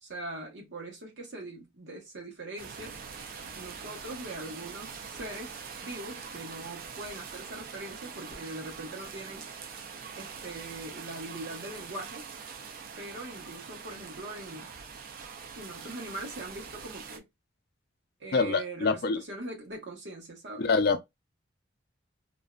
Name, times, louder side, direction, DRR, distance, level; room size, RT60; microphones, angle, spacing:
voice 1, 0.0-3.0 3.4-9.5 10.2-12.3 13.0-14.7 15.6-17.2 18.2-20.6, right 2 dB, 65° right, 1.0 m, -41 dB
sound 1, 2.6-17.2, right 6 dB, 50° right, 0.4 m, -43 dB
voice 2, 18.3-19.2 20.6-21.0, left 4 dB, 55° left, 0.4 m, -25 dB
2.5 x 2.1 x 2.3 m
head